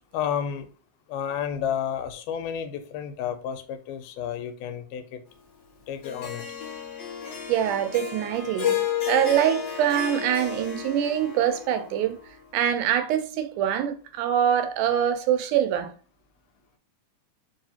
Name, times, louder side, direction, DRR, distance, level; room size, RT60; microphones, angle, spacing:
voice 1, 0.1-0.7 1.1-5.2 5.9-6.4, left 8 dB, 85° left, 2.1 m, -31 dB
Harp, 6.0-12.4, left 9 dB, 55° left, 2.0 m, -32 dB
voice 2, 7.5-8.8 9.1-12.2 12.5-15.9, right 10 dB, 80° right, 2.0 m, -24 dB
4.8 x 2.6 x 2.8 m
omnidirectional pair, 3.7 m